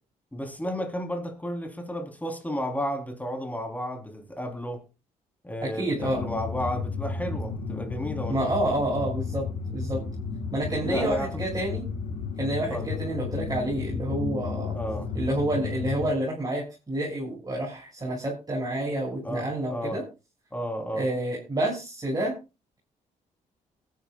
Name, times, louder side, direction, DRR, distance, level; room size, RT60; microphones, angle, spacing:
voice 1, 0.3-4.8 5.4-8.5 10.8-11.7 12.7-13.0 14.7-15.1 19.2-20.0 20.5-21.1, equal, 10° left, 4.2 m, -33 dB
voice 2, 5.8-6.2 8.3-10.0 10.5-11.8 12.4-14.8 15.1-20.0 20.9-22.3, right 1 dB, 25° right, 7.1 m, -29 dB
sound 1, 6.0-16.1, left 5 dB, 80° left, 2.5 m, -33 dB
21.0 x 11.5 x 2.5 m
supercardioid pair, 65°, 15 cm